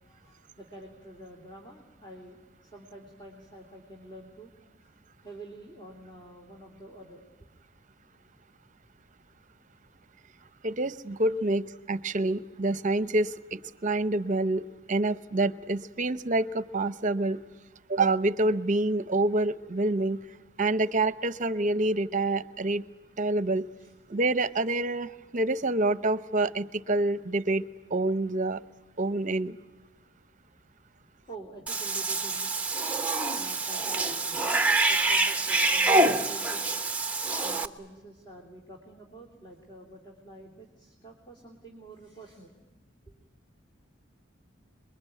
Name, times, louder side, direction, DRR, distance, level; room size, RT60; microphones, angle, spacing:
voice 1, 0.1-4.5 4.8-4.9 5.2-7.2 23.8-23.9 31.3-32.5 33.3-36.7 37.4-42.5, right 1 dB, 25° left, 1 dB, 3.2 m, -48 dB
voice 2, 10.6-11.6 11.9-17.4 17.9-20.2 20.6-22.8 23.2-23.7 24.1-28.6 29.0-29.5, right 2 dB, 40° right, 14 dB, 0.8 m, -27 dB
Cat / Bathtub (filling or washing), 31.7-37.7, right 2 dB, 5° right, 1.0 m, -26 dB
27.5 x 22.5 x 9.2 m, 1.2 s
head